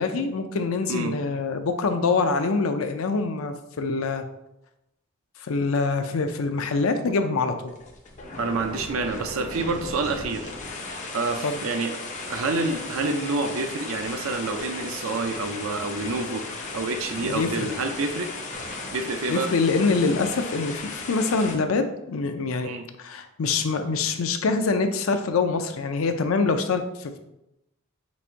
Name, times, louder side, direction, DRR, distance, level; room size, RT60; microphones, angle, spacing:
voice 1, 0.0-4.2 5.5-7.5 11.4-11.6 17.2-17.7 19.3-22.7 23.0-27.2, left 4 dB, 75° left, 8 dB, 0.5 m, -25 dB
sound 1, 7.7-21.5, left 3 dB, 35° left, 0.6 m, -36 dB
voice 2, 8.4-10.5 11.1-12.0 12.3-18.3 18.9-19.5 22.6-22.9, right 3 dB, 75° right, 6 dB, 0.5 m, -28 dB
4.1 x 2.5 x 4.5 m, 0.86 s
head